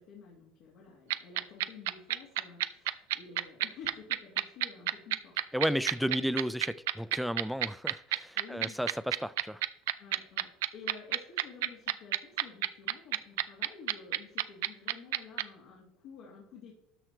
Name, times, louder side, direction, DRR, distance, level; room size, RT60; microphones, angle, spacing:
voice 1, 0.0-5.6 6.0-6.2 8.4-8.8 10.0-16.7, left 5 dB, 65° left, 2.4 m, -51 dB
sound 1, 1.1-15.4, right 16 dB, 85° right, 0.4 m, -29 dB
voice 2, 5.5-9.6, equal, ahead, 0.4 m, -33 dB
12.5 x 4.4 x 4.5 m
supercardioid pair, 110°, 0 cm